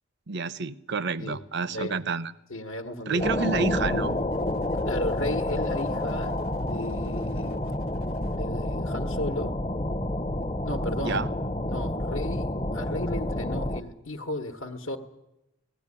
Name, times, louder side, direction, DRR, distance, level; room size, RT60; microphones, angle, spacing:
voice 1, 0.3-2.3 3.1-4.2 11.0-11.3, right 4 dB, 50° right, 17 dB, 0.7 m, -29 dB
voice 2, 1.7-2.0 2.5-3.3 4.8-6.3 6.6-7.6 8.3-9.6 10.6-11.3 11.7-15.0, left 1 dB, 70° left, 5 dB, 1.2 m, -35 dB
sound 1, 3.1-8.4, right 2 dB, 80° right, 0.9 m, -50 dB
sound 2, 3.2-13.8, left 1 dB, 25° left, 0.8 m, -29 dB
17.5 x 15.5 x 9.8 m, 0.93 s
head